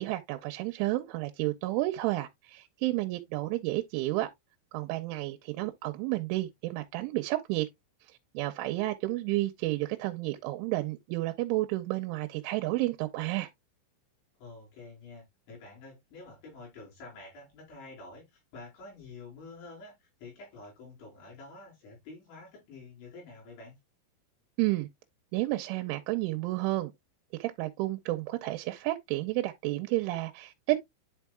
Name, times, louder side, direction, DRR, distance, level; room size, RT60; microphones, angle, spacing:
voice 1, 0.0-4.3 4.7-7.7 8.3-13.5 24.6-24.9 25.3-26.9 27.4-30.8, right 18 dB, 85° right, 3.1 m, -31 dB
voice 2, 14.4-23.8, left 3 dB, 70° left, 7.2 m, -48 dB
11.0 x 4.6 x 2.3 m
omnidirectional pair, 5.5 m